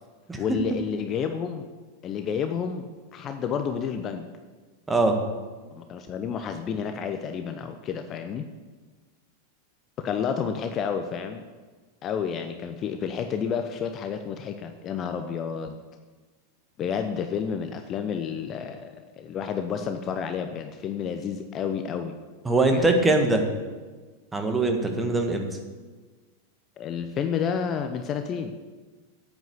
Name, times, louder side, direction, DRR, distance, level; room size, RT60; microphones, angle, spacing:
voice 1, 0.4-1.7 2.0-4.3 5.7-8.5 10.0-11.4 12.0-15.8 16.8-22.2 22.7-22.9 26.8-28.6, left 7 dB, 30° left, 8 dB, 0.7 m, -30 dB
voice 2, 22.5-23.4 24.3-25.5, right 2 dB, 10° right, 4 dB, 1.7 m, -22 dB
9.0 x 8.3 x 8.2 m, 1.4 s
figure-of-eight pair, 90°, 0 cm